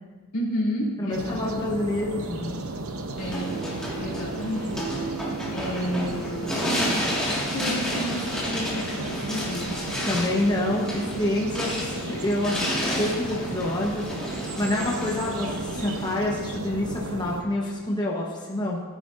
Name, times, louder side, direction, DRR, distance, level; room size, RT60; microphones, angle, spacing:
voice 1, 0.3-1.5 3.2-3.7 4.0-9.8, equal, 80° left, -4 dB, 2.8 m, -32 dB
voice 2, 1.0-2.5 10.1-18.8, left 1 dB, 20° left, -3 dB, 1.0 m, -27 dB
sound 1, 1.1-17.4, right 2 dB, 85° right, 0.8 m, -34 dB
sound 2, 3.2-16.1, equal, 5° left, 1.9 m, -31 dB
13.0 x 10.0 x 2.6 m, 1.3 s
head